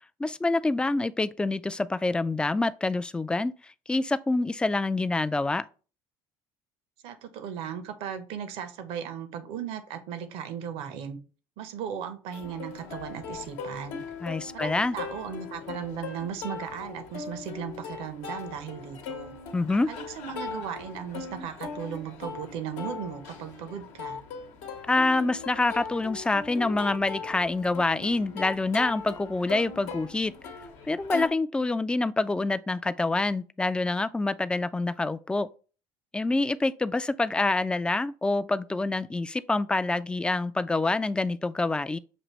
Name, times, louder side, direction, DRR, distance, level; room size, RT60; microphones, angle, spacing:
voice 1, 0.2-3.5 3.9-5.6 14.2-15.0 19.5-19.9 24.9-30.3 30.9-35.5 36.1-42.0, left 2 dB, 10° left, 0.3 m, -26 dB
voice 2, 7.0-11.2 11.6-14.1 14.5-19.3 19.9-24.2, right 8 dB, 70° right, 0.8 m, -37 dB
Plucked string instrument, 12.3-31.3, left 5 dB, 75° left, 0.9 m, -39 dB
6.3 x 2.6 x 3.0 m
supercardioid pair, 80°, 10 cm